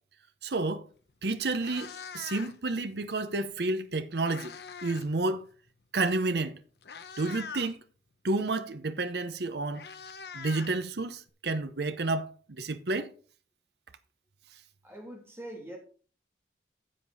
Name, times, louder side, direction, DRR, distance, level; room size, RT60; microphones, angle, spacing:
voice 1, 0.4-0.9 1.2-4.6 4.8-5.5 5.9-6.6 7.2-7.8 8.2-9.9 10.3-13.1, right 2 dB, 65° right, 0.8 m, -30 dB
Meow, 1.0-1.1 1.4-2.7 3.8-5.1 5.4-5.7 6.4-6.5 6.8-7.7 9.1-9.2 9.4-11.3, left 6 dB, 65° left, 0.8 m, -44 dB
voice 2, 14.8-15.8, right 1 dB, 15° right, 3.0 m, -43 dB
10.0 x 7.5 x 4.0 m
head